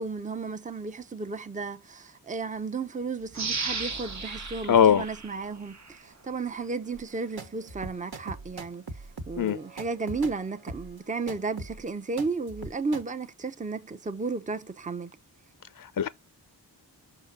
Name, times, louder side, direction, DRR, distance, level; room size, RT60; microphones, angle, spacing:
voice 1, 0.0-15.1, right 4 dB, 20° right, 0.6 m, -33 dB
sound 1, 3.3-6.0 6.5-6.6, right 4 dB, 40° right, 1.1 m, -35 dB
voice 2, 4.7-5.0 9.4-9.6 15.8-16.1, left 8 dB, 50° left, 0.6 m, -21 dB
sound 2, 6.9-13.0, right 3 dB, 60° right, 1.3 m, -41 dB
5.9 x 4.0 x 5.0 m
wide cardioid pair, 55°, 42 cm